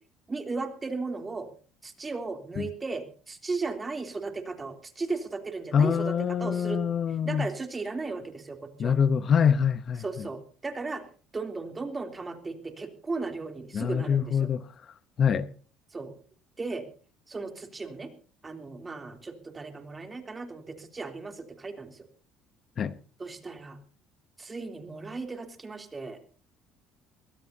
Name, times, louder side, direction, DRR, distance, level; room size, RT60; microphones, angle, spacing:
voice 1, 0.3-1.5 1.8-6.1 6.4-6.8 7.2-8.9 10.0-11.0 11.3-14.5 15.9-16.1 16.6-16.8 17.3-18.1 18.4-22.1 23.2-23.8 24.4-26.2, right 3 dB, 25° right, 3.2 m, -36 dB
voice 2, 5.7-7.5 8.8-10.3 13.7-14.7 15.2-15.5 22.8-22.9, left 7 dB, 45° left, 0.9 m, -25 dB
23.5 x 17.0 x 2.8 m
supercardioid pair, 80°, 0 cm